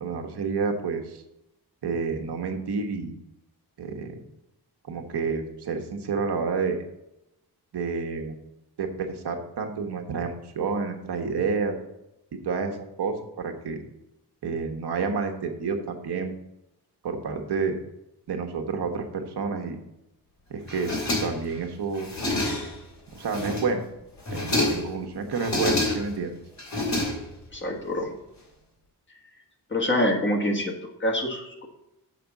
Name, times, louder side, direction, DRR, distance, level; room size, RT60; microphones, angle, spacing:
voice 1, 0.0-1.2 1.8-3.1 3.8-4.2 4.9-6.8 7.7-8.4 8.8-11.8 12.4-13.8 14.4-16.3 17.0-17.8 18.3-19.8 20.5-20.9 21.2-22.1 23.1-23.8 24.3-26.4, right 5 dB, 85° right, 4 dB, 1.2 m, -29 dB
sound 1, 20.7-21.6 21.9-22.8 23.2-23.8 24.2-24.9 25.3-26.2 26.6-27.6, left 2 dB, 45° left, 2.4 m, -28 dB
voice 2, 27.5-28.1 29.7-30.7 31.0-31.7, left 1 dB, 30° left, 0 dB, 1.5 m, -25 dB
7.2 x 5.1 x 7.1 m, 0.88 s
wide cardioid pair, 160°, 39 cm